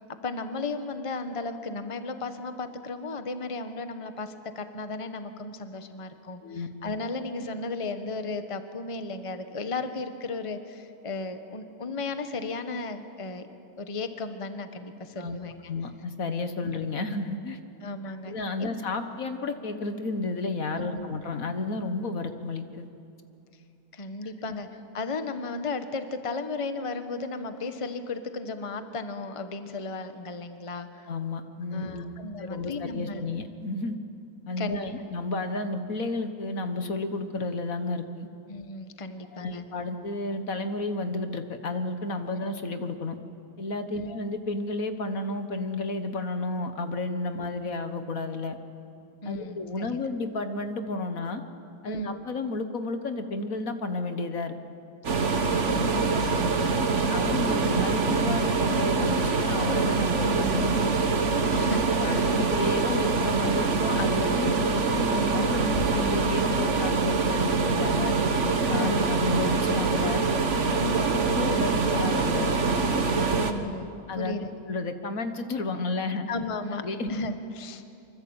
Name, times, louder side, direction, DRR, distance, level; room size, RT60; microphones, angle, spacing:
voice 1, 0.0-13.5 13.8-15.5 16.6-16.8 17.8-18.7 20.7-21.1 23.9-31.1 31.7-33.3 34.6-34.9 38.5-39.6 43.9-44.1 49.2-49.9 51.8-52.1 55.3-57.3 60.2-60.3 61.5-62.3 67.9-68.3 68.8-69.1 70.8-71.0 73.3-74.5 76.3-77.8, left 3 dB, 20° left, 8 dB, 1.2 m, -35 dB
voice 2, 15.7-17.6 18.3-22.9 31.1-32.1 32.4-34.0 34.5-38.3 39.3-43.2 43.6-48.6 49.2-51.4 51.8-54.6 57.1-60.9 62.0-68.1 68.7-70.3 71.0-72.6 74.1-74.4 74.7-76.2 76.8-77.1, left 3 dB, 60° left, 8 dB, 1.8 m, -32 dB
sound 1, 55.0-73.5, right 4 dB, 50° right, 1.6 m, -24 dB
25.5 x 25.0 x 8.9 m, 2.6 s
omnidirectional pair, 1.7 m